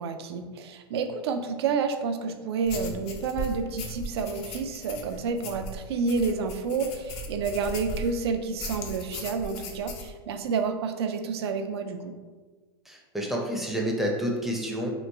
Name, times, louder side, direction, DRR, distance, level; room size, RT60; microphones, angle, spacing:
voice 1, 0.0-12.2, right 5 dB, 85° right, 7 dB, 0.4 m, -29 dB
sound 1, 2.6-8.2 8.6-10.1, left 1 dB, 45° left, 0.5 m, -37 dB
voice 2, 12.9-14.9, equal, ahead, -1 dB, 0.5 m, -29 dB
3.0 x 2.4 x 3.3 m, 1.4 s
supercardioid pair, 125°, 13 cm